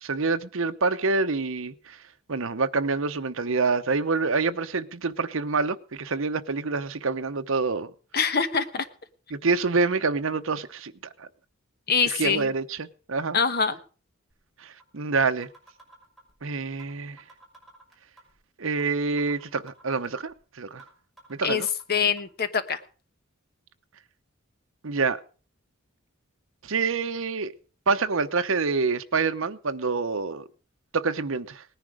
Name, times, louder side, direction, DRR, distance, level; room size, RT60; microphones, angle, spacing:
voice 1, 0.0-2.0 2.3-7.9 9.3-10.9 11.2-11.3 12.0-13.4 14.6-15.5 16.4-17.2 18.6-20.8 21.3-21.7 24.8-25.2 26.6-27.5 27.9-30.4 30.9-31.6, right 4 dB, 65° right, 0.9 m, -27 dB
voice 2, 8.1-8.8 11.9-12.5 13.3-13.8 21.4-21.6 21.9-22.8, left 6 dB, 45° left, 1.2 m, -24 dB
sound 1, 14.3-14.4 14.8-14.9 15.2-16.3 16.8-16.9 17.2-18.3 18.8-18.9 19.2-20.3 20.8-20.9 21.2-22.2, right 2 dB, ahead, 5.9 m, -52 dB
19.0 x 10.5 x 5.0 m
head